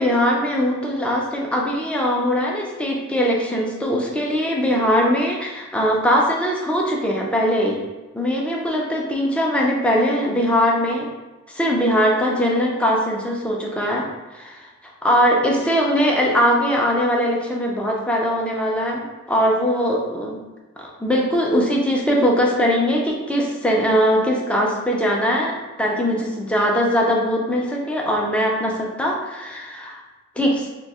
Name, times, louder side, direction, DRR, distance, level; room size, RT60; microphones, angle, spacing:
voice 1, 0.0-7.8 8.1-11.1 11.5-14.1 14.3-14.7 15.0-20.4 20.8-30.0 30.4-30.7, equal, 5° left, -2 dB, 0.5 m, -21 dB
2.7 x 2.2 x 4.1 m, 1.2 s
head